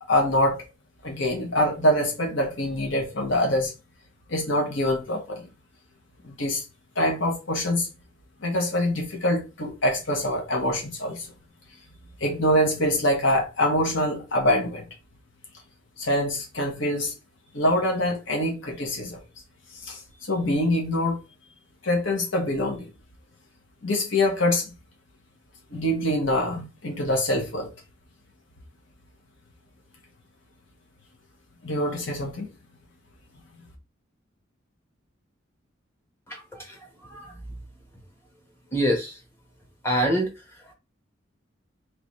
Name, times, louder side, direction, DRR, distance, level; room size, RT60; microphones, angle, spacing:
voice 1, 0.1-0.6 1.0-3.7 4.3-5.5 6.2-6.6 6.9-7.9 8.4-11.3 12.2-14.8 16.0-17.1 17.5-19.2 19.8-20.0 20.3-21.2 21.8-22.9 23.8-24.7 25.7-27.7 31.6-32.5, left 1 dB, 65° left, 1.2 m, -24 dB
voice 2, 36.3-37.4 38.7-39.2 39.8-40.7, equal, 10° left, 1.1 m, -27 dB
3.9 x 3.3 x 3.1 m
head